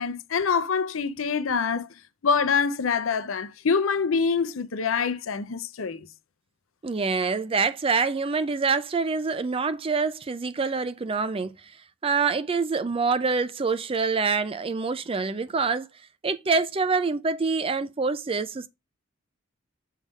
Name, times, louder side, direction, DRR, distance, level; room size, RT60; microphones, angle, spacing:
voice 1, 0.0-1.9 2.2-6.1, left 5 dB, 85° left, 0.6 m, -25 dB
voice 2, 6.8-11.6 12.0-15.9 16.2-18.7, right 4 dB, 30° right, 0.5 m, -26 dB
6.5 x 3.5 x 5.2 m
head